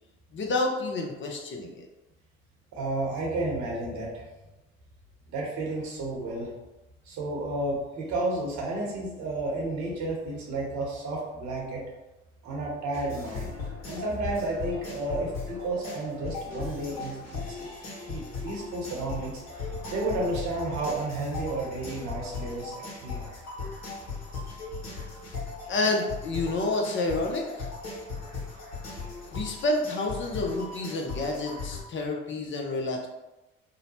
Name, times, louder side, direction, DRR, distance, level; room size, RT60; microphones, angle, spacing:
voice 1, 0.3-1.8 25.7-27.7 29.2-33.1, left 2 dB, 35° left, 1 dB, 0.6 m, -29 dB
voice 2, 2.7-4.3 5.3-6.5 7.1-11.8 12.4-17.7 18.1-23.3 24.3-24.4, right 2 dB, 60° right, -2 dB, 1.0 m, -32 dB
sound 1, 12.9-31.8, left 4 dB, 55° left, 1.2 m, -38 dB
2.8 x 2.0 x 2.9 m, 1.0 s
hypercardioid pair, 60°, 32 cm